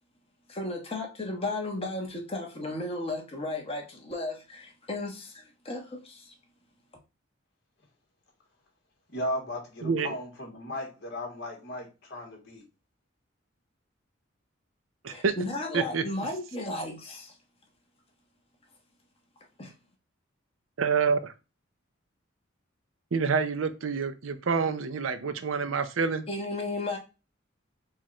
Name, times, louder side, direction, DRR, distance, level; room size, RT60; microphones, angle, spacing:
voice 1, 0.5-6.3 15.1-17.3 19.6-19.7 26.3-27.0, left 2 dB, 30° left, 1.3 m, -34 dB
voice 2, 9.1-12.6, left 1 dB, 60° left, 1.8 m, -36 dB
voice 3, 9.8-10.2 15.0-15.3 15.7-16.0 20.8-21.3 23.1-26.3, right 5 dB, 85° right, 0.6 m, -27 dB
4.6 x 2.5 x 4.2 m
head